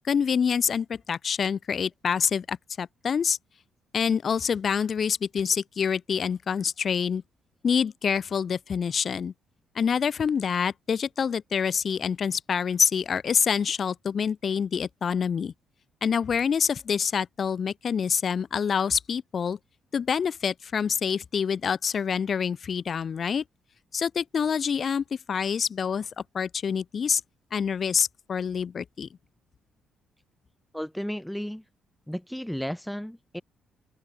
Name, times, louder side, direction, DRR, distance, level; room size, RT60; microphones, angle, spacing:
voice 1, 0.0-3.4 3.9-7.2 7.6-9.3 9.7-15.5 16.0-19.6 19.9-23.4 23.9-26.1 26.3-27.2 27.5-29.1, left 7 dB, 50° left, 0.7 m, -26 dB
voice 2, 30.7-31.6 32.1-33.4, equal, 5° left, 2.3 m, -33 dB
open air
cardioid pair, 90°, 0 cm